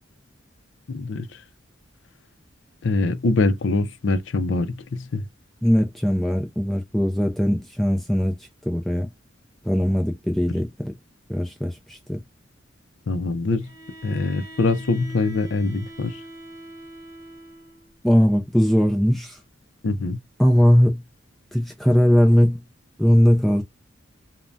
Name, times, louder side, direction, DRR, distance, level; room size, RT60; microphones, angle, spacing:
voice 1, 0.9-1.3 2.8-5.3 13.1-13.7 14.0-16.2 19.8-20.2, left 3 dB, 65° left, 0.5 m, -23 dB
voice 2, 5.6-8.4 8.7-9.1 9.6-10.9 11.3-12.2 18.0-19.4 20.4-21.0 21.5-22.6 23.0-23.6, equal, ahead, 0.3 m, -19 dB
Bowed string instrument, 13.6-17.9, right 1 dB, 15° right, 0.7 m, -42 dB
3.2 x 2.1 x 2.5 m
head